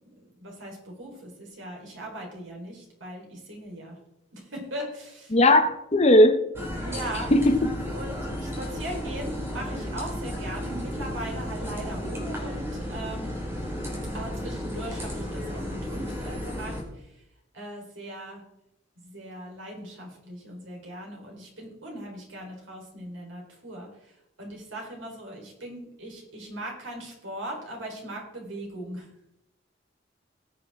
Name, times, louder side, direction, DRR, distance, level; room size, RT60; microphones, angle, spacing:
voice 1, 0.4-4.0 4.3-5.4 6.8-7.3 7.9-13.3 14.1-17.1 17.5-18.4 19.0-23.9 24.4-29.1, right 1 dB, 80° right, 4.2 m, -39 dB
voice 2, 5.3-6.4 7.3-7.7, left 1 dB, 35° left, 0.9 m, -18 dB
sound 1, 6.5-16.8, equal, 15° right, 3.0 m, -33 dB
19.0 x 7.8 x 3.7 m
head